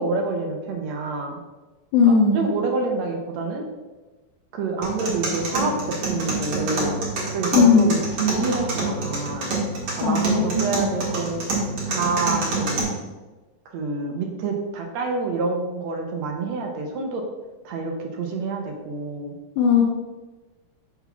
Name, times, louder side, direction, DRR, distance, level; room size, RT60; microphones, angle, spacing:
voice 1, 0.0-1.4 2.0-3.6 4.5-7.0 7.3-9.5 10.0-11.4 11.9-12.8 13.6-17.2 17.6-19.3, right 3 dB, 75° right, 2 dB, 1.7 m, -27 dB
voice 2, 1.9-2.5 7.5-7.9 10.0-10.7 19.6-19.8, left 5 dB, 75° left, 0 dB, 1.8 m, -17 dB
sound 1, 4.8-12.8, right 2 dB, 50° right, 2.1 m, -27 dB
5.7 x 3.8 x 5.9 m, 1.2 s
omnidirectional pair, 3.9 m